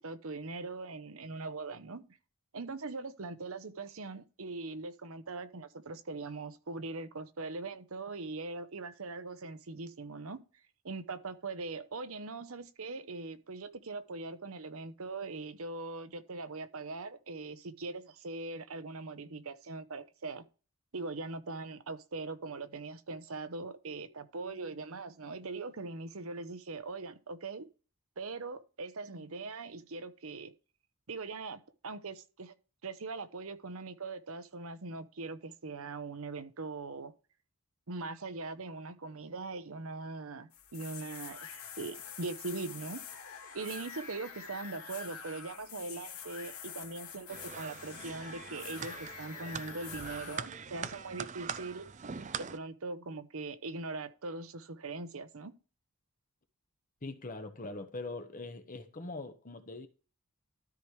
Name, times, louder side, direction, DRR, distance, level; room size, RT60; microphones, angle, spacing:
voice 1, 0.0-2.2 2.5-10.4 10.8-20.4 20.9-27.7 28.2-30.5 31.1-32.5 32.8-37.1 37.9-41.4 41.8-43.0 43.5-51.9 52.4-55.5, right 3 dB, 70° right, 0.9 m, -41 dB
sound 1, 40.5-50.4, left 7 dB, 70° left, 2.3 m, -46 dB
sound 2, 47.3-52.6, right 6 dB, 35° right, 0.5 m, -42 dB
voice 2, 57.0-59.9, left 2 dB, 35° left, 1.0 m, -42 dB
13.0 x 4.8 x 3.2 m
head